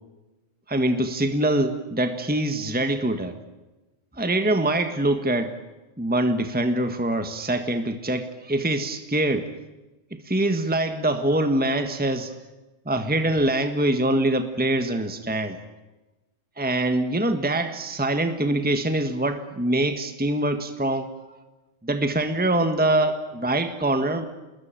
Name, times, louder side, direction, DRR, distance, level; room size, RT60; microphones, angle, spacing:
voice 1, 0.7-3.4 4.2-5.5 6.0-9.5 10.2-12.3 12.8-15.6 16.6-21.4 21.8-24.2, right 1 dB, 5° right, 8 dB, 1.6 m, -24 dB
27.5 x 21.0 x 9.1 m, 1.1 s
omnidirectional pair, 1.4 m